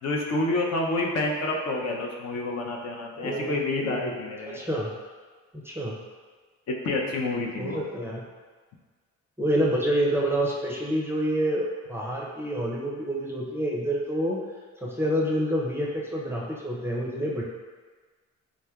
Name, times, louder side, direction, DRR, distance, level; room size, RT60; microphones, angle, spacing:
voice 1, 0.0-4.6 6.7-7.8, left 2 dB, 55° left, -1 dB, 0.6 m, -28 dB
voice 2, 3.2-4.1 4.5-4.9 5.6-6.0 7.6-8.2 9.4-14.4 14.8-17.4, equal, 10° right, -4 dB, 0.5 m, -28 dB
3.6 x 3.1 x 2.3 m, 1.5 s
cardioid pair, 90°, 30 cm